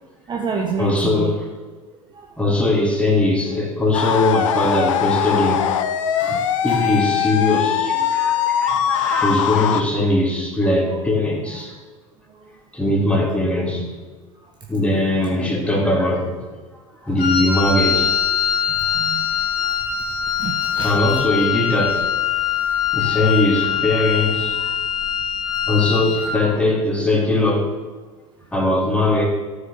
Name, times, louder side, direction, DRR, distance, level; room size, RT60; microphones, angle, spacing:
voice 1, 0.3-1.3 2.1-2.6 6.2-6.8 8.8-8.9 12.3-12.5 18.8-19.3 19.6-19.7 20.3-21.4, right 5 dB, 25° right, 1 dB, 1.4 m, -30 dB
voice 2, 0.8-1.5 2.4-5.7 6.6-11.7 12.7-13.9 14.7-16.5 17.0-18.1 20.8-22.1 22.9-24.8 25.7-27.7 28.5-29.3, left 2 dB, 5° left, -2 dB, 3.4 m, -20 dB
sound 1, 3.9-9.8, left 9 dB, 65° left, 0.9 m, -21 dB
Wind instrument woodwind instrument, 17.2-26.4, left 8 dB, 40° left, 4.2 m, -22 dB
13.0 x 6.7 x 7.1 m, 1.4 s
figure-of-eight pair, 80°, 18 cm